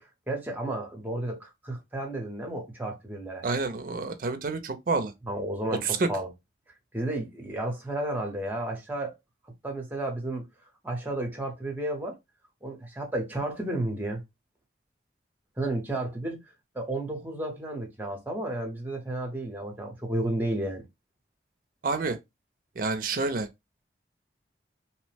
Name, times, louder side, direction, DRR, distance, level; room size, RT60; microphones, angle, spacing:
voice 1, 0.0-3.5 5.3-6.3 6.9-9.1 9.6-10.4 10.8-12.1 12.6-14.2 15.6-16.4 16.7-20.8, right 1 dB, 10° right, 0.7 m, -32 dB
voice 2, 3.4-5.1 5.8-6.1 21.8-22.2 22.8-23.5, right 3 dB, 50° right, 0.5 m, -28 dB
2.8 x 2.1 x 3.2 m
head